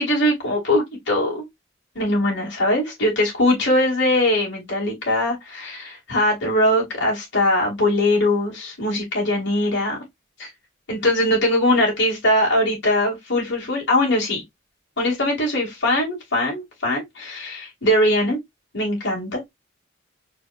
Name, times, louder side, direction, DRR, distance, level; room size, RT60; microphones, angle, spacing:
voice 1, 0.0-1.4 1.9-10.0 10.4-10.5 10.9-14.4 15.0-18.4 18.7-19.5, left 1 dB, 65° left, 2.8 m, -21 dB
4.4 x 4.1 x 2.6 m
head